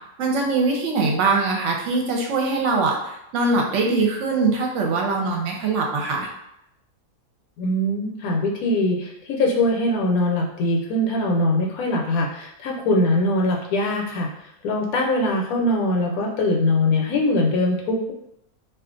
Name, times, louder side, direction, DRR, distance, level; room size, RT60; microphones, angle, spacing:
voice 1, 0.2-6.3, right 3 dB, 65° right, 0 dB, 0.9 m, -22 dB
voice 2, 7.6-14.3 14.6-18.1, left 1 dB, 75° left, 0 dB, 1.0 m, -22 dB
2.4 x 2.3 x 3.7 m, 0.80 s
omnidirectional pair, 1.6 m